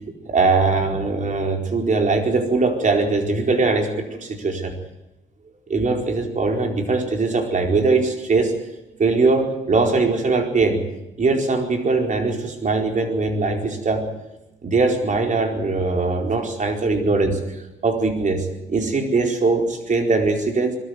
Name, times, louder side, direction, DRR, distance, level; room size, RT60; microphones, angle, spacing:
voice 1, 0.3-4.7 5.7-8.5 9.0-10.8 11.2-14.0 14.6-17.4 17.8-20.8, right 3 dB, 40° right, 3 dB, 4.6 m, -21 dB
22.0 x 13.5 x 9.6 m, 0.94 s
cardioid pair, 90°, 20 cm